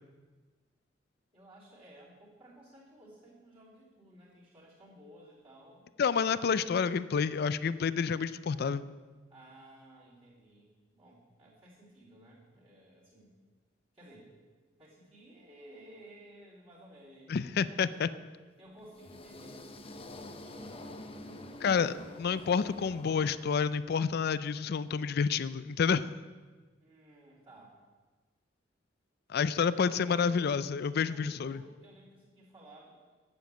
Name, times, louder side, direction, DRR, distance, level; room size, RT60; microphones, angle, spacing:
voice 1, 1.3-5.9 9.3-13.4 13.9-14.3 14.8-18.2 18.6-21.1 22.3-22.9 26.8-27.8 29.8-30.4 30.8-33.1, right 1 dB, 30° right, -9 dB, 3.3 m, -55 dB
voice 2, 6.0-8.9 17.3-18.1 21.6-26.1 29.3-31.6, left 6 dB, 55° left, 16 dB, 0.4 m, -29 dB
sound 1, 18.8-24.0, left 1 dB, 30° left, 0.8 m, -47 dB
9.3 x 7.1 x 8.4 m, 1.4 s
head